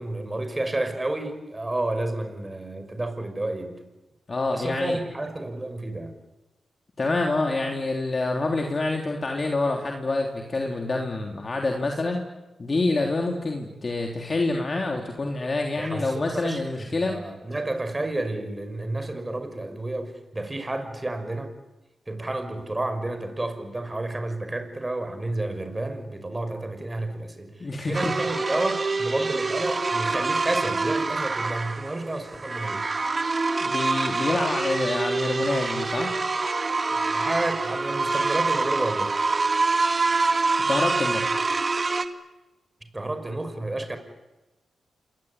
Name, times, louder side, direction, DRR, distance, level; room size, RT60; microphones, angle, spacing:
voice 1, 0.0-3.8 4.5-6.1 15.8-21.5 22.1-32.9 36.9-39.2 42.9-44.0, right 2 dB, 20° right, 8 dB, 5.8 m, -31 dB
voice 2, 4.3-5.0 7.0-12.2 12.6-17.2 27.6-28.2 33.6-36.1 40.7-41.3, left 2 dB, 40° left, 2 dB, 3.4 m, -27 dB
sound 1, 27.9-42.1, right 3 dB, 40° right, 2.0 m, -26 dB
27.5 x 21.5 x 9.7 m, 1.1 s
cardioid pair, 65°, 0 cm